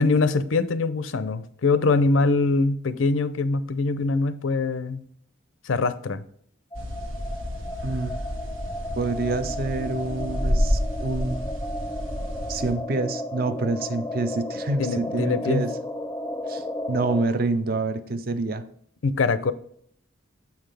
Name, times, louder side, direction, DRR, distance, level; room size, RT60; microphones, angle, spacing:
voice 1, 0.0-5.0 5.6-6.2 14.8-15.6 19.0-19.5, left 3 dB, 75° left, 13 dB, 0.5 m, -23 dB
sound 1, 6.7-17.2, left 1 dB, 15° left, 0.3 m, -34 dB
sound 2, 6.7-12.7, equal, 85° right, 1.5 m, -29 dB
voice 2, 7.8-8.2 9.0-11.5 12.5-15.7 16.5-16.6 16.9-18.6, right 3 dB, 45° right, 11 dB, 0.6 m, -27 dB
7.3 x 5.8 x 3.3 m, 0.65 s
head